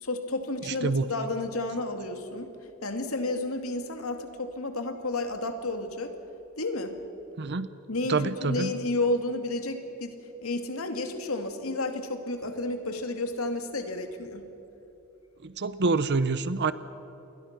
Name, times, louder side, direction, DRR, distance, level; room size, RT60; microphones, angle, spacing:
voice 1, 0.0-2.5 2.8-6.1 6.6-6.9 7.9-10.2 10.4-14.4, left 2 dB, 80° left, 6 dB, 2.4 m, -31 dB
voice 2, 0.7-1.1 7.4-7.7 8.1-8.7 15.4-16.7, right 3 dB, 55° right, 14 dB, 0.8 m, -26 dB
28.5 x 21.5 x 6.0 m, 3.0 s
head